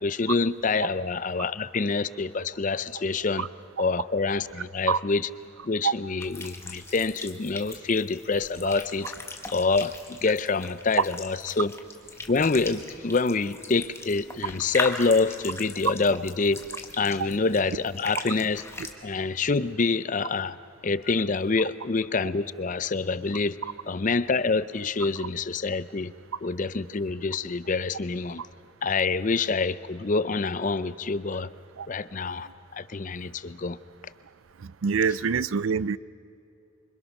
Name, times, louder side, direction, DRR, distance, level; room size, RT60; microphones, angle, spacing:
voice 1, 0.0-3.5 3.8-5.3 5.6-9.1 9.5-11.7 12.3-16.6 17.0-18.6 19.0-20.6 20.8-23.6 23.9-26.1 26.4-28.4 28.8-31.5 31.9-33.8, left 4 dB, 40° left, 0.5 m, -26 dB
sound 1, 6.2-18.9, left 3 dB, 15° left, 1.4 m, -39 dB
voice 2, 34.6-36.0, right 6 dB, 75° right, 0.5 m, -25 dB
27.5 x 25.0 x 6.0 m
head